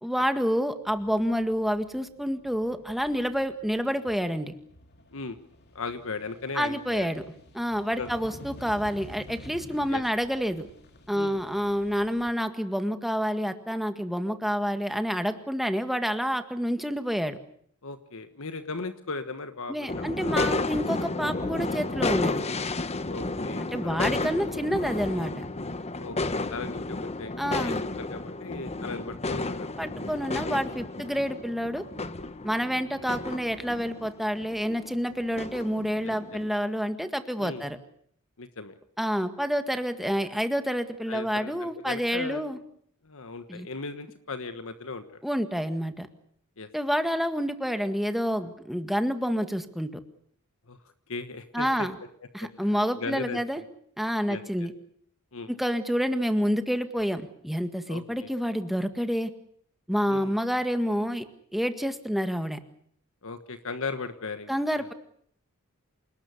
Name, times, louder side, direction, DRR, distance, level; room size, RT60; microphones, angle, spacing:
voice 1, 0.0-4.5 6.6-7.2 7.5-10.7 11.1-17.4 19.7-22.4 23.7-25.5 27.4-27.8 29.8-31.8 32.4-37.8 39.0-42.6 43.5-43.7 45.2-46.1 46.7-49.9 51.5-51.9 52.3-53.6 54.0-54.7 55.6-59.3 59.9-61.3 61.5-62.6 64.5-64.9, equal, ahead, 8 dB, 1.8 m, -28 dB
sound 1, 0.9-12.3, left 1 dB, 50° left, 2.8 m, -50 dB
voice 2, 5.7-7.1 8.0-8.1 9.9-10.0 11.1-11.4 17.8-20.4 23.1-24.0 26.0-27.3 27.6-29.8 36.0-36.4 37.4-37.6 38.4-38.8 41.1-42.4 43.0-45.0 46.6-46.7 50.7-50.8 51.1-51.9 52.4-53.4 54.3-54.4 55.3-55.5 57.9-58.3 60.1-60.3 63.2-64.9, left 3 dB, 65° left, 9 dB, 1.4 m, -37 dB
sound 2, 19.9-36.5, left 2 dB, 30° left, 1.0 m, -32 dB
28.0 x 19.5 x 8.3 m, 0.65 s
head